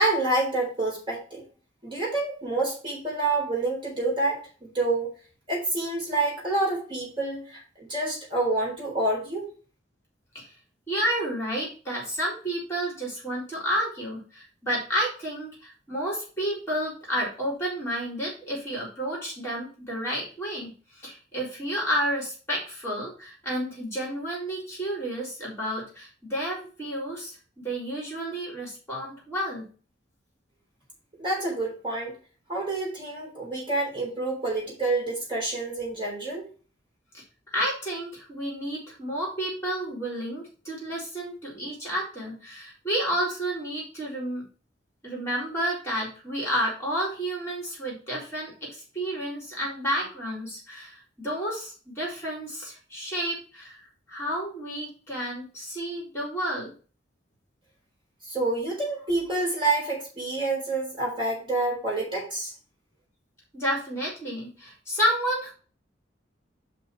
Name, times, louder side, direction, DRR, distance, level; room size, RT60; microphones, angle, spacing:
voice 1, 0.0-1.4 1.8-5.1 5.5-9.5 31.2-32.1 32.5-36.5 58.2-62.5, right 2 dB, 25° right, -4 dB, 4.1 m, -28 dB
voice 2, 10.9-29.6 37.1-37.2 37.5-44.4 45.0-53.8 54.1-56.7 63.5-65.5, equal, 15° left, -3 dB, 4.0 m, -31 dB
5.5 x 5.4 x 6.0 m, 0.37 s
head